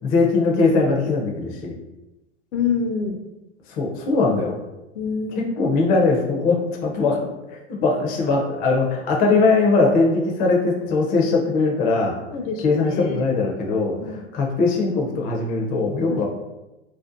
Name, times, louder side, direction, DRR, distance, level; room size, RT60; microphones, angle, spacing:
voice 1, 0.0-1.8 3.7-4.6 5.4-7.3 7.8-12.1 12.6-16.2, left 3 dB, 25° left, 0 dB, 0.4 m, -20 dB
voice 2, 2.5-3.2 4.9-5.5 12.3-13.2 14.0-14.3 16.1-16.2, left 5 dB, 85° left, 5 dB, 0.5 m, -26 dB
2.6 x 2.1 x 2.4 m, 1.0 s
hypercardioid pair, 125°, 35 cm